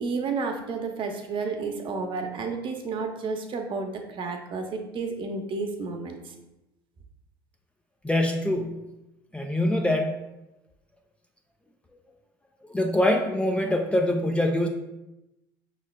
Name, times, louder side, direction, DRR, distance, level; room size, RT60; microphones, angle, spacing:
voice 1, 0.0-6.2, right 4 dB, 45° right, 4 dB, 0.7 m, -31 dB
voice 2, 8.0-8.9 9.3-10.2 12.7-14.7, left 1 dB, 10° left, 3 dB, 0.4 m, -24 dB
5.4 x 3.3 x 2.2 m, 0.95 s
hypercardioid pair, 70°, 12 cm